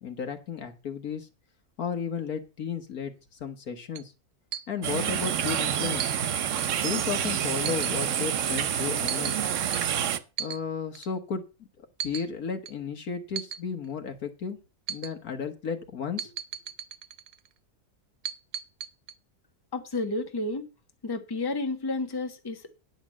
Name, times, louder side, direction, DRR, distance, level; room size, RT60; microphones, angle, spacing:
voice 1, 0.0-1.3 1.8-3.1 3.4-4.1 4.7-6.1 6.8-9.4 10.4-11.4 11.8-14.6 14.9-16.3, left 6 dB, 70° left, 6 dB, 1.9 m, -33 dB
sound 1, 3.9-4.0 4.5-4.7 6.0-6.2 6.6-6.8 7.7-8.1 9.1-9.4 9.7-9.8 10.4-10.6 10.9-11.1 12.0-12.3 12.7-12.8 13.4-13.6 14.9-15.1 16.2-17.5 18.2-19.1, right 9 dB, 90° right, 1.2 m, -36 dB
sound 2, 4.8-10.2, right 9 dB, 60° right, 1.0 m, -28 dB
voice 2, 19.7-20.7 21.0-22.7, left 2 dB, 15° left, 5 dB, 1.2 m, -31 dB
10.0 x 5.2 x 7.5 m, 0.30 s
omnidirectional pair, 1.6 m